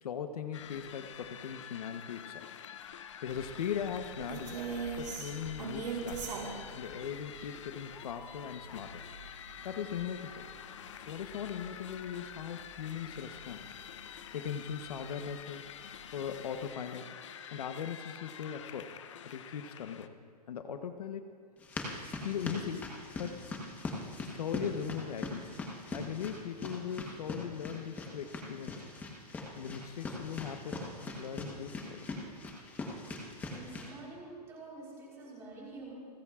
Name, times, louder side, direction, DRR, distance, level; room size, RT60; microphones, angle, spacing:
voice 1, 0.0-2.5 2.7-2.8 3.2-4.6 5.0-6.3 6.7-9.0 9.6-10.5 11.1-13.7 14.3-15.7 16.1-17.2 17.5-18.9 19.2-20.1 20.5-21.4 22.2-23.5 24.2-25.6 25.9-28.8 29.6-32.1, left 8 dB, 65° left, 7 dB, 1.0 m, -39 dB
sound 1, 0.5-20.1, left 9 dB, 45° left, 0.7 m, -48 dB
sound 2, 3.3-13.7 14.0-14.2 14.6-15.4 15.8-15.9 16.2-16.6, right 5 dB, 85° right, 4.4 m, -43 dB
sound 3, 21.6-33.9, left 3 dB, 10° left, 1.1 m, -41 dB
voice 2, 33.5-35.9, right 3 dB, 15° right, -4 dB, 3.9 m, -47 dB
29.5 x 14.0 x 2.5 m, 2.3 s
hypercardioid pair, 170°, 21 cm